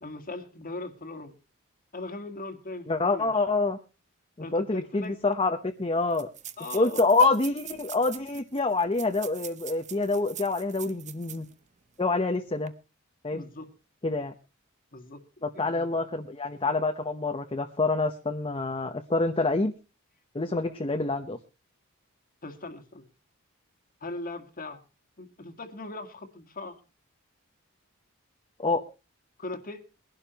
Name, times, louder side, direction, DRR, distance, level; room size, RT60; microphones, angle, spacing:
voice 1, 0.0-1.4 1.9-3.3 4.4-5.2 6.6-7.0 13.3-13.7 14.9-15.9 22.4-23.1 24.0-24.8 25.2-26.8 29.4-29.8, left 2 dB, 40° left, 7 dB, 1.7 m, -39 dB
voice 2, 2.9-3.8 4.4-6.3 6.7-11.5 12.0-12.7 13.2-13.4 14.0-14.3 15.4-19.7 20.3-21.4 28.6-28.8, left 3 dB, 25° left, 4 dB, 0.9 m, -26 dB
sound 1, 5.0-5.1 5.3-5.4 6.1-11.5 11.9-12.0 12.5-12.7, right 10 dB, 35° right, 0.8 m, -43 dB
22.0 x 11.5 x 3.0 m, 0.30 s
head